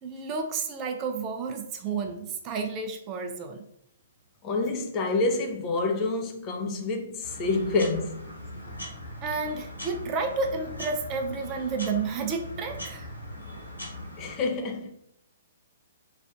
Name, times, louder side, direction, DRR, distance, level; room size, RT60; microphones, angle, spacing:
voice 1, 0.0-3.6 9.2-13.1, right 4 dB, 25° right, 0.4 m, -31 dB
voice 2, 4.4-8.2 14.2-14.9, left 3 dB, 25° left, 0.6 m, -27 dB
sound 1, 7.2-14.4, left 1 dB, 85° left, 1.2 m, -40 dB
3.3 x 2.5 x 3.3 m
figure-of-eight pair, 120°, 0 cm